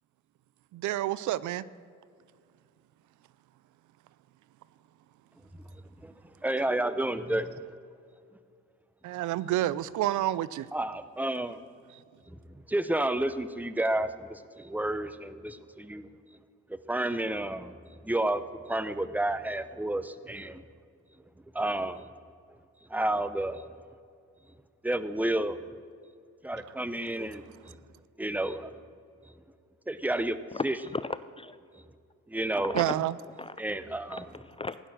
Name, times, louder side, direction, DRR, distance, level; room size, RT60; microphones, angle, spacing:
voice 1, 0.7-1.6 9.0-10.7 32.7-33.1, right 14 dB, 75° right, 18 dB, 0.5 m, -29 dB
voice 2, 6.4-7.5 10.7-11.6 12.3-16.1 16.9-17.7 18.0-18.4 18.7-20.6 21.5-22.1 22.9-23.7 24.8-25.6 26.4-27.8 28.2-28.7 29.9-30.4 30.6-30.8 32.3-32.7 33.6-34.2, right 1 dB, 5° right, 12 dB, 0.8 m, -30 dB
voice 3, 30.9-31.6 32.6-33.0 33.4-33.6 34.1-34.8, left 3 dB, 20° left, 14 dB, 0.4 m, -35 dB
16.0 x 11.0 x 6.4 m, 2.3 s
cardioid pair, 90°, 30 cm